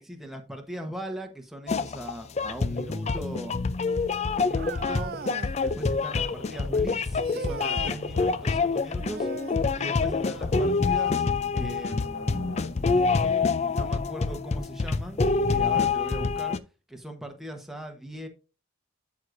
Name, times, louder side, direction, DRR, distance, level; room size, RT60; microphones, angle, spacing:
voice 1, 0.0-3.6 4.4-5.2 5.5-11.3 11.5-12.7 13.7-16.6 16.9-18.3, right 1 dB, ahead, 1.0 m, -39 dB
sound 1, 1.7-16.6, left 4 dB, 30° left, 0.4 m, -26 dB
sound 2, 4.6-5.6 7.2-8.0 9.0-9.7 11.7-11.9 12.7-12.8 13.8-13.9, right 6 dB, 45° right, 0.3 m, -38 dB
sound 3, 5.9-7.7 7.9-11.7 11.9-13.3, left 3 dB, 75° left, 1.5 m, -46 dB
12.5 x 4.8 x 2.6 m
head